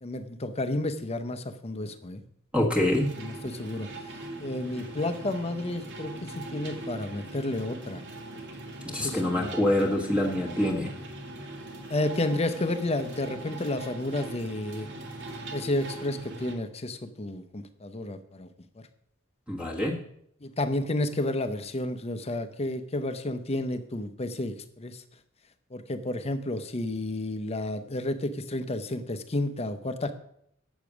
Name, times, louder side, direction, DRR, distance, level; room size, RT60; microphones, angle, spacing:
voice 1, 0.0-2.2 3.2-3.9 4.4-8.0 8.8-9.5 11.9-14.9 15.5-18.5 20.4-25.0 25.7-30.1, left 1 dB, 30° left, 10 dB, 0.7 m, -31 dB
voice 2, 2.5-3.1 8.9-10.9 19.5-20.0, left 1 dB, 5° right, 0 dB, 1.4 m, -25 dB
sound 1, 2.8-16.5, right 2 dB, 60° right, 1.8 m, -41 dB
8.1 x 6.9 x 6.1 m, 0.71 s
head